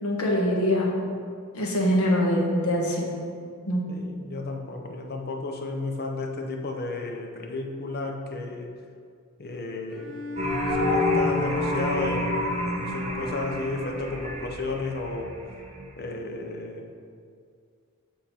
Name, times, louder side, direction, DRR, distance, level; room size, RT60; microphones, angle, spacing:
voice 1, 0.0-1.0 1.5-3.1 3.6-3.8, equal, 75° left, -2 dB, 1.2 m, -23 dB
voice 2, 3.9-8.7 9.4-10.1 10.7-15.3 16.0-16.8, left 3 dB, 45° left, 2 dB, 0.7 m, -33 dB
Bowed string instrument, 9.9-14.6, left 1 dB, 5° left, 1.3 m, -36 dB
sound 1, 10.4-15.9, left 2 dB, 30° right, 0.8 m, -28 dB
7.2 x 3.9 x 4.3 m, 2.2 s
head